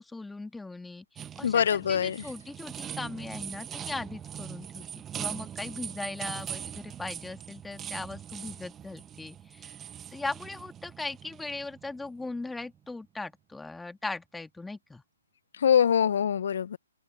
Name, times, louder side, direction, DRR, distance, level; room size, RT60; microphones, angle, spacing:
voice 1, 0.0-1.6 1.9-4.8 5.2-9.8 10.1-15.0, left 3 dB, 5° left, 1.8 m, -39 dB
sound 1, 1.2-12.8, right 9 dB, 15° right, 0.9 m, -41 dB
voice 2, 1.4-2.2 15.6-16.8, left 8 dB, 55° left, 0.5 m, -24 dB
figure-of-eight pair, 140°, 0 cm